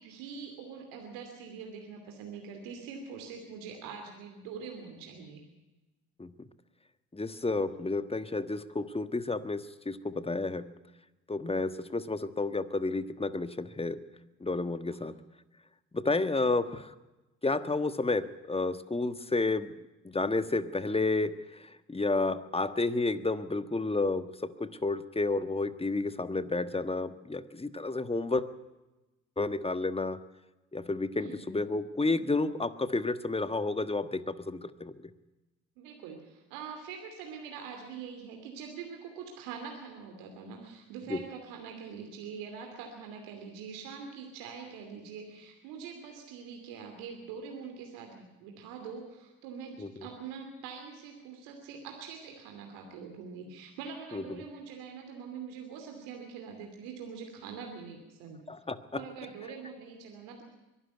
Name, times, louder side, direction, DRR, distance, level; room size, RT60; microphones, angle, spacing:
voice 1, 0.0-5.4 14.9-15.0 31.1-31.8 35.8-58.4 58.9-60.4, right 6 dB, 80° right, 3 dB, 2.8 m, -44 dB
voice 2, 7.1-10.7 11.3-14.0 14.4-15.1 15.9-16.9 17.4-19.7 20.0-28.4 29.4-30.2 30.7-35.0 41.1-41.2 49.8-50.1 54.1-54.2 58.5-59.0, left 3 dB, 15° left, 12 dB, 1.4 m, -31 dB
23.0 x 12.0 x 9.3 m, 1.1 s
hypercardioid pair, 50°, 38 cm